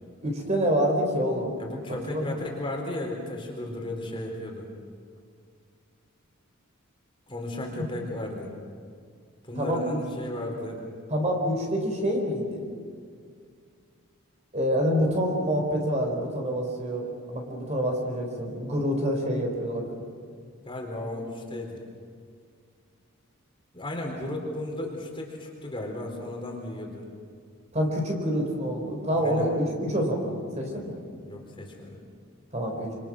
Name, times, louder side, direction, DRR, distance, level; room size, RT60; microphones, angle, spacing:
voice 1, 0.2-1.5 2.1-2.4 7.7-7.8 9.5-10.0 11.1-12.7 14.5-19.9 27.7-31.0 32.5-32.9, equal, 30° right, 2 dB, 4.2 m, -27 dB
voice 2, 1.6-4.7 7.3-8.5 9.4-10.8 20.6-21.8 23.7-27.1 29.1-29.5 30.7-30.9 31.2-32.0, left 1 dB, 25° left, 1 dB, 4.0 m, -35 dB
27.0 x 26.5 x 6.2 m, 2.2 s
head